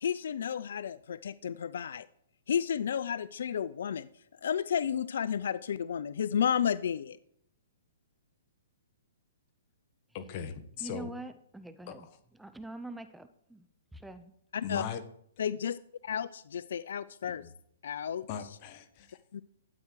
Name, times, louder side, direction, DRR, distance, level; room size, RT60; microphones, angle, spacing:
voice 1, 0.0-2.1 2.5-4.1 4.4-7.2 14.5-14.8 15.4-15.8 16.0-17.4 17.8-18.3 19.3-19.4, left 8 dB, 70° left, 18 dB, 0.4 m, -32 dB
voice 2, 10.1-11.1 11.9-12.1 14.6-15.0 17.4-17.5 18.3-19.4, left 7 dB, 40° left, 11 dB, 1.5 m, -39 dB
voice 3, 10.8-12.1 12.3-14.3, right 2 dB, 5° right, 10 dB, 0.7 m, -44 dB
12.5 x 8.8 x 4.7 m, 0.71 s
hypercardioid pair, 135°, 0 cm